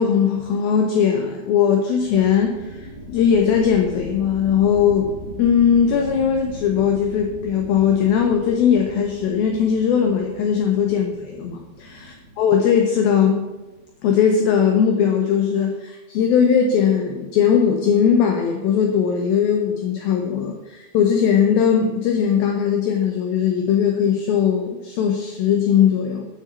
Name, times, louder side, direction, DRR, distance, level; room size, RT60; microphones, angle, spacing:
voice 1, 0.0-5.1 5.4-12.1 12.4-13.4 14.0-26.3, left 7 dB, 80° left, 3 dB, 2.2 m, -19 dB
sound 1, 2.0-14.3, equal, 55° left, 5.3 m, -39 dB
9.6 x 7.5 x 6.9 m, 1.1 s
omnidirectional pair, 5.3 m